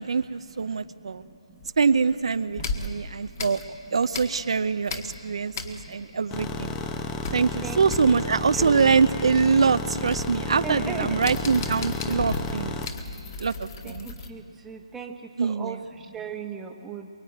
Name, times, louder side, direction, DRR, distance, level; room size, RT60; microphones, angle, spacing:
voice 1, 0.0-1.2 1.8-3.6 3.9-6.7 7.3-12.8 13.4-14.1 15.4-15.8, right 5 dB, 60° right, 10 dB, 0.7 m, -24 dB
voice 2, 0.7-1.7 2.6-3.4 5.2-6.2 7.6-8.2 8.5-8.9 10.6-11.3 12.7-13.3 13.8-17.1, right 6 dB, 5° right, 2 dB, 1.2 m, -40 dB
sound 1, 1.6-2.1 2.6-4.6 4.8-6.2 6.4-6.5 6.8-14.3, left 3 dB, 30° left, 1.7 m, -36 dB
sound 2, 6.3-12.9, left 3 dB, 15° left, 0.9 m, -32 dB
23.0 x 21.5 x 9.3 m, 2.5 s
figure-of-eight pair, 160°, 3 cm